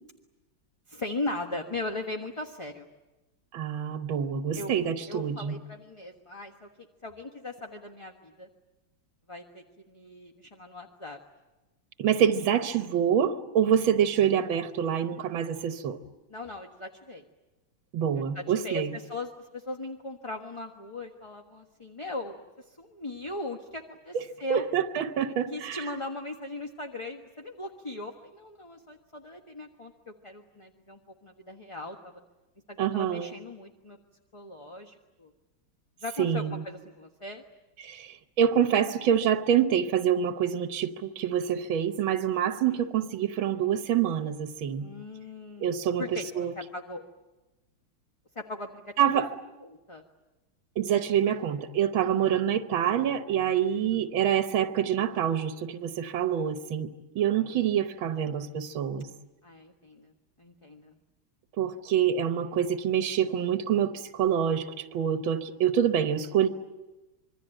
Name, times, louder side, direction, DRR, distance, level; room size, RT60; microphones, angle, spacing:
voice 1, 0.9-2.9 4.5-4.7 5.1-6.7 7.0-8.5 9.3-11.2 16.3-17.2 18.2-24.6 25.5-32.2 32.7-34.0 34.3-35.3 36.0-37.4 42.7-42.8 44.8-46.3 46.5-47.0 48.3-49.2 49.6-50.0 52.0-52.4 53.8-54.0 57.2-57.5 59.4-60.1 60.4-61.0, left 2 dB, 20° left, 3 dB, 1.1 m, -39 dB
voice 2, 3.5-5.6 12.0-16.0 17.9-18.9 24.1-24.2 24.5-25.9 32.8-33.3 36.2-36.6 37.8-44.9 45.6-46.5 49.0-49.3 50.8-59.1 61.6-66.5, right 9 dB, 80° right, 9 dB, 1.9 m, -26 dB
26.5 x 23.0 x 9.0 m, 1.1 s
omnidirectional pair, 2.2 m